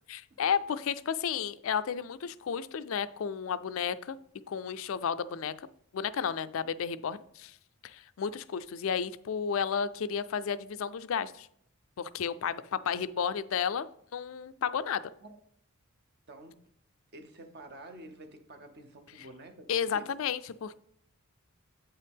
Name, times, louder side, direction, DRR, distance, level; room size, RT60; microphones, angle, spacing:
voice 1, 0.1-4.2 4.5-5.7 5.9-7.6 7.8-11.5 12.0-15.0 19.7-20.8, left 7 dB, 65° left, 14 dB, 0.4 m, -32 dB
voice 2, 16.3-16.6 17.1-20.1, right 1 dB, 50° right, 6 dB, 0.7 m, -49 dB
8.1 x 5.5 x 3.5 m, 0.71 s
head